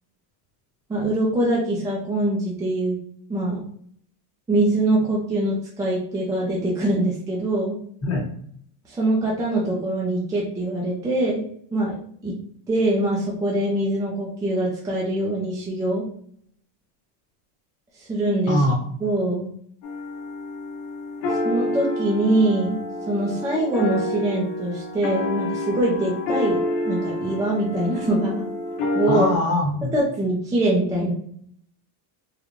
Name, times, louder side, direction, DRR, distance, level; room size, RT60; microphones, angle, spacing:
voice 1, 0.9-2.9 3.3-3.6 4.5-7.8 8.9-11.4 11.7-12.0 12.2-12.3 12.7-16.1 18.0-18.6 19.0-19.5 21.3-26.6 26.8-28.4 28.9-29.3 29.9-31.1, right 1 dB, 10° right, -4 dB, 0.3 m, -23 dB
voice 2, 18.5-18.8 29.1-29.9, left 1 dB, 30° left, -1 dB, 1.0 m, -22 dB
sound 1, 19.8-29.4, left 1 dB, 70° left, 0.9 m, -28 dB
3.8 x 2.2 x 3.0 m, 0.64 s
cardioid pair, 145°, 50 cm